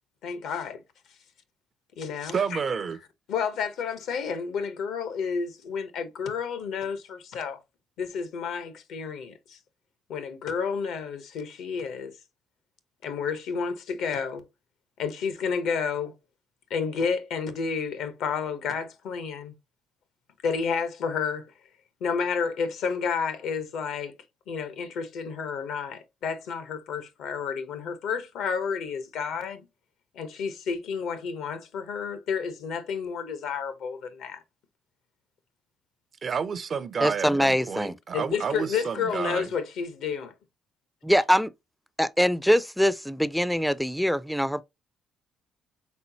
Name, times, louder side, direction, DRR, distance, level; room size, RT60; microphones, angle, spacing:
voice 1, 0.2-0.8 2.0-2.6 3.3-7.6 8.0-9.6 10.1-12.2 13.0-14.5 15.0-16.1 16.7-19.5 20.4-21.5 22.0-24.1 24.5-29.7 30.1-34.4 38.1-40.3, left 6 dB, 75° left, 0.8 m, -31 dB
voice 2, 2.3-3.0 36.2-39.5, right 6 dB, 50° right, 0.5 m, -30 dB
voice 3, 37.0-38.0 41.1-41.5 42.0-44.6, equal, ahead, 0.4 m, -23 dB
4.3 x 3.8 x 2.7 m
supercardioid pair, 65°, 0 cm